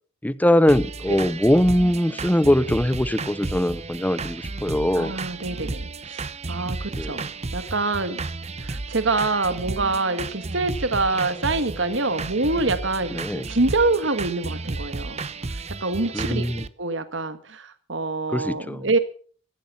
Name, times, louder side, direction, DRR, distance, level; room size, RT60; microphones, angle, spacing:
voice 1, 0.2-5.1 7.0-7.1 13.1-13.5 16.1-16.6 18.3-18.9, left 1 dB, 10° left, 0.7 m, -21 dB
sound 1, 0.7-16.7, right 3 dB, 35° right, 0.8 m, -33 dB
voice 2, 4.9-7.2 7.5-8.2 8.6-15.2 15.8-19.0, right 3 dB, 65° right, 1.7 m, -25 dB
15.5 x 13.0 x 5.5 m
head